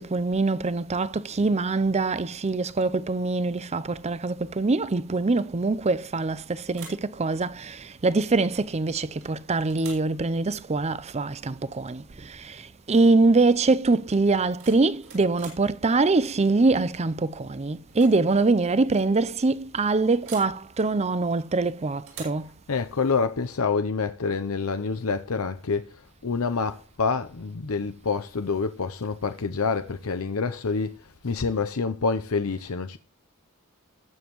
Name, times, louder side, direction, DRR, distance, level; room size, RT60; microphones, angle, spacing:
voice 1, 0.0-12.0 12.4-12.6 12.9-22.5, right 3 dB, 30° right, 0.5 m, -24 dB
sound 1, 6.0-6.4 6.7-7.1 8.9-9.3 9.7-10.1 12.0-12.1 12.5-12.8 14.3-15.7 17.2-17.5 17.8-18.2 18.4-18.5 20.2-20.6 22.1-22.5, right 6 dB, 70° right, 6.4 m, -45 dB
voice 2, 22.7-33.0, left 4 dB, 70° left, 0.7 m, -27 dB
19.5 x 7.3 x 3.1 m
head